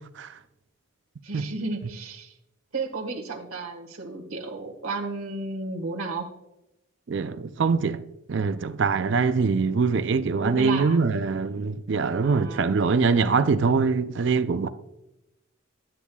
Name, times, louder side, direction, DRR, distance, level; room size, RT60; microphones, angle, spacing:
voice 1, 1.2-2.3 2.7-6.3 10.4-11.0 12.2-12.8, right 3 dB, 90° right, 1.5 m, -33 dB
voice 2, 7.1-8.0 8.3-14.7, right 4 dB, 55° right, 0.4 m, -23 dB
9.9 x 9.6 x 2.3 m
head